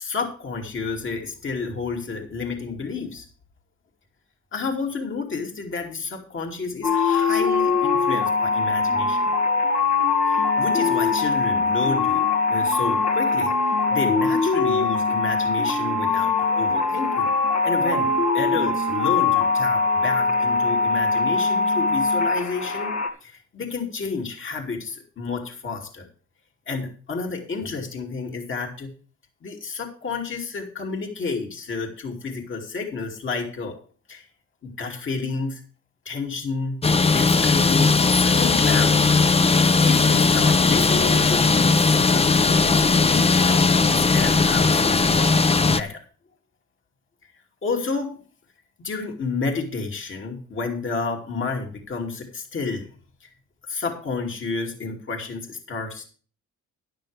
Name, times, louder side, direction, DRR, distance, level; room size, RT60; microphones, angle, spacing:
voice 1, 0.0-3.3 4.5-9.3 10.2-13.5 13.9-17.3 17.6-22.9 23.2-26.1 26.7-28.9 29.4-33.8 34.1-34.3 34.6-35.6 36.0-36.8 37.1-39.2 39.8-46.0 47.6-48.2 48.8-52.9 53.2-53.3 53.7-56.1, left 4 dB, 40° left, 3 dB, 2.6 m, -30 dB
sound 1, 6.8-23.1, left 4 dB, 60° left, 2.0 m, -22 dB
sound 2, 36.8-45.8, left 4 dB, 20° left, 0.6 m, -18 dB
12.5 x 10.5 x 3.4 m, 0.41 s
cardioid pair, 90°, 30 cm